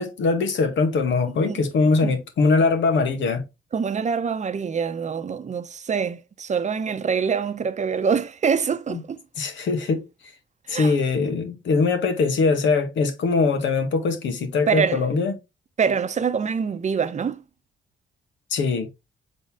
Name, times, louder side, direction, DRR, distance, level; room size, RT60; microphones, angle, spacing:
voice 1, 0.0-3.4 8.9-9.0 9.4-10.1 10.7-15.3 18.5-18.9, left 4 dB, 70° left, 1.9 m, -22 dB
voice 2, 3.7-9.2 10.7-10.9 14.7-15.0 15.8-17.4, right 6 dB, 35° right, 0.8 m, -25 dB
6.7 x 4.0 x 3.5 m
cardioid pair, 90°, 20 cm